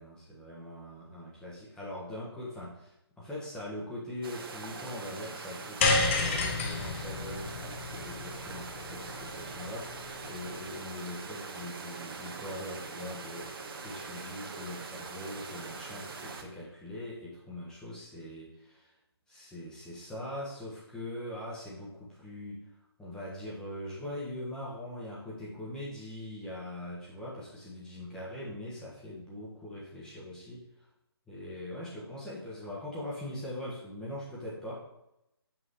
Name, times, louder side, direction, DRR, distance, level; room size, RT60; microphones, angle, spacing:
voice 1, 0.0-18.9 19.3-30.6 31.3-34.7, left 1 dB, 5° left, -6 dB, 1.2 m, -42 dB
sound 1, 4.2-16.4, right 4 dB, 60° right, 1.1 m, -42 dB
sound 2, 5.8-10.2, left 3 dB, 30° left, 0.8 m, -31 dB
5.8 x 4.8 x 4.0 m, 0.84 s
hypercardioid pair, 155°, 14 cm